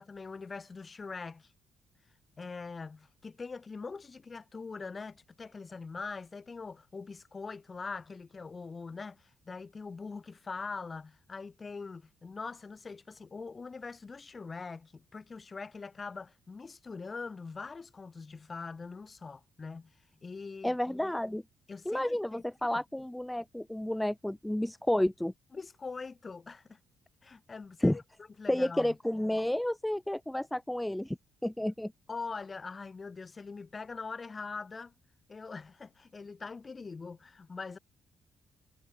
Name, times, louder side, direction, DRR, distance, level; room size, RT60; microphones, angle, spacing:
voice 1, 0.0-1.5 2.4-19.9 20.2-20.8 21.7-22.8 25.5-26.8 27.2-28.0 28.4-29.0 32.1-34.9 35.3-37.8, left 4 dB, 30° left, 5.8 m, -43 dB
voice 2, 20.6-21.4 21.8-25.3 27.8-28.0 28.5-31.2 31.4-31.9, left 1 dB, 5° left, 1.5 m, -31 dB
cardioid pair, 90°, 0 cm